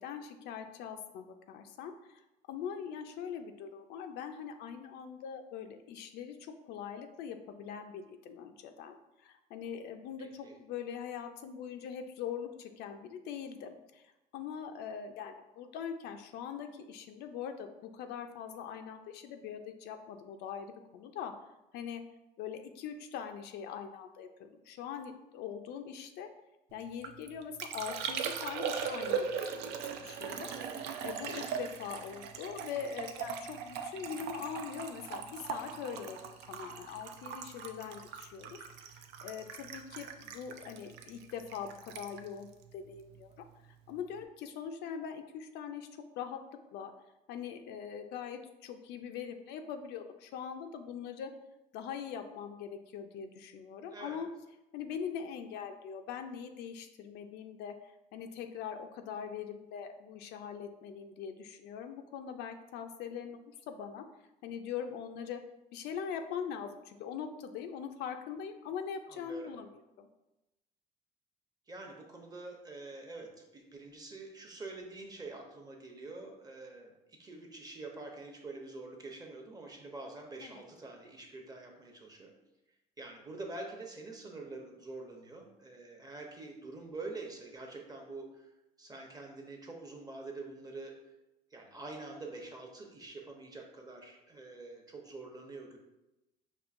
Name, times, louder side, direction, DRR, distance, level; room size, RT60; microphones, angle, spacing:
voice 1, 0.0-2.2 2.5-21.3 21.7-22.0 22.4-26.3 26.7-43.4 43.9-45.9 46.2-46.4 46.7-46.9 47.3-51.3 51.7-54.3 54.7-64.0 64.4-65.4 65.7-69.7 70.0-70.1 80.4-80.6, left 7 dB, 80° left, 6 dB, 0.4 m, -42 dB
voice 2, 10.2-10.6 30.5-30.8 31.2-31.3 53.9-54.2 69.1-69.5 71.7-82.3 83.0-88.4 88.8-90.9 91.5-95.8, right 3 dB, 20° right, 1 dB, 0.7 m, -46 dB
Liquid, 26.8-43.4 43.7-44.2, right 6 dB, 80° right, 0.4 m, -40 dB
5.3 x 2.6 x 2.5 m, 0.96 s
cardioid pair, 110°, 17 cm